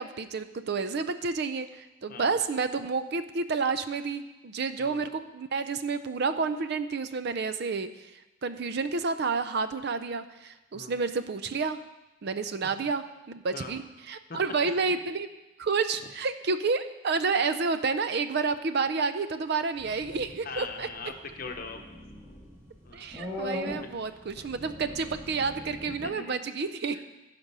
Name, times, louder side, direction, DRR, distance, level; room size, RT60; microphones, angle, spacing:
voice 1, 0.0-7.9 8.4-11.8 12.2-15.3 15.6-20.9 22.9-27.0, right 4 dB, 50° right, 11 dB, 0.5 m, -30 dB
sound 1, 19.8-26.1, left 1 dB, 15° right, 2.2 m, -41 dB
voice 2, 20.4-21.8 22.8-23.1 23.8-23.9 24.3-24.5 25.8-26.4 26.9-27.0, left 4 dB, 45° left, 5 dB, 0.9 m, -41 dB
15.5 x 5.2 x 5.4 m, 1.0 s
head